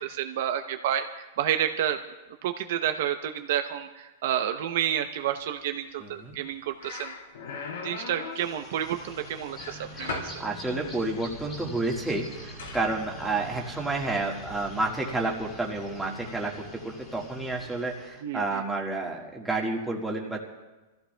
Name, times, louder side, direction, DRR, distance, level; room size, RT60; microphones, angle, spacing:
voice 1, 0.0-2.0 2.4-7.1 7.8-10.3 18.2-18.6, right 10 dB, 60° right, 7 dB, 0.7 m, -30 dB
voice 2, 6.0-6.3 9.9-10.0 10.4-20.4, right 2 dB, 5° right, -2 dB, 1.6 m, -30 dB
sound 1, 6.3-6.5 6.8-8.5 9.6-10.4 12.6-12.9, left 4 dB, 80° left, 3.9 m, -37 dB
sound 2, 8.3-18.2, left 1 dB, 20° left, 2.3 m, -44 dB
28.5 x 15.0 x 2.3 m, 1.1 s
supercardioid pair, 155°, 0 cm